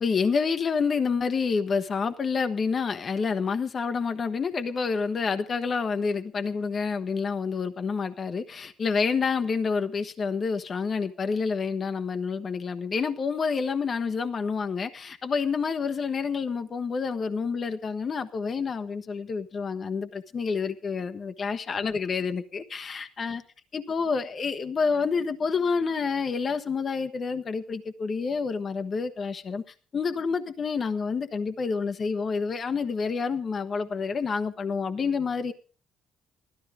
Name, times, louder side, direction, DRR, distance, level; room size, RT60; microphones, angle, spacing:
voice 1, 0.0-23.4 23.7-29.6 29.9-35.5, left 5 dB, 45° left, 1.1 m, -28 dB
16.5 x 13.0 x 5.0 m
supercardioid pair, 75°, 0 cm